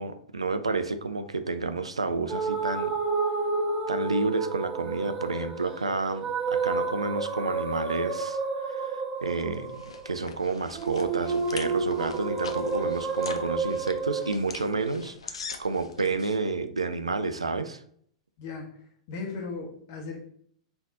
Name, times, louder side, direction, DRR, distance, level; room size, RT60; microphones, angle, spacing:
voice 1, 0.0-2.9 3.9-17.8, right 3 dB, 80° right, 9 dB, 0.4 m, -30 dB
sound 1, 2.3-14.4, right 4 dB, 15° right, 1.1 m, -30 dB
sound 2, 9.3-16.4, left 5 dB, 70° left, 0.5 m, -43 dB
voice 2, 18.4-20.2, left 4 dB, 45° left, 1 dB, 1.4 m, -38 dB
4.0 x 3.4 x 3.8 m, 0.63 s
figure-of-eight pair, 100°, 3 cm